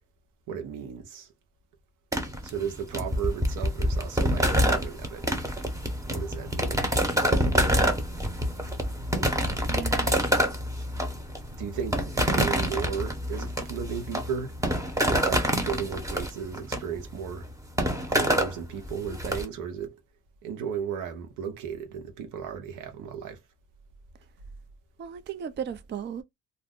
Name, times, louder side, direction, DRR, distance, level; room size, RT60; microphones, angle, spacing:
voice 1, 0.5-1.3 2.4-5.2 6.0-6.9 7.4-7.9 9.9-10.2 11.6-14.5 15.0-17.5 18.1-20.0 20.4-23.4, right 7 dB, 85° right, 0.8 m, -35 dB
sound 1, 2.1-19.4, equal, 10° right, 0.8 m, -27 dB
voice 2, 9.7-10.2 25.0-26.2, right 8 dB, 35° right, 0.4 m, -36 dB
2.5 x 2.0 x 3.6 m
cardioid pair, 90°, 30 cm